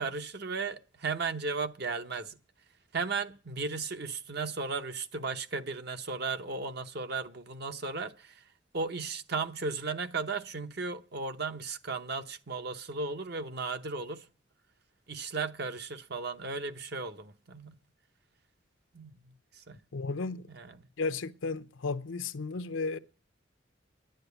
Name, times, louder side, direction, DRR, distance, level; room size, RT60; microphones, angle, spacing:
voice 1, 0.0-2.4 2.9-14.3 15.1-17.8 18.9-19.8 20.5-20.8, right 4 dB, 55° right, 0.9 m, -35 dB
voice 2, 19.9-20.4 21.0-23.0, left 4 dB, 85° left, 0.7 m, -34 dB
10.5 x 9.4 x 8.2 m
head